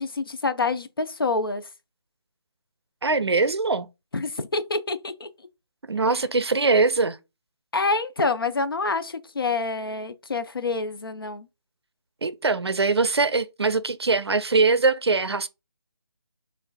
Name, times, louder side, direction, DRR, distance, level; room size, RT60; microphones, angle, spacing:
voice 1, 0.0-1.7 4.1-5.3 7.7-11.5, left 3 dB, 60° left, 0.5 m, -27 dB
voice 2, 3.0-3.9 5.9-7.2 12.2-15.5, right 3 dB, 75° right, 0.4 m, -22 dB
6.1 x 2.5 x 2.3 m
figure-of-eight pair, 150°, 14 cm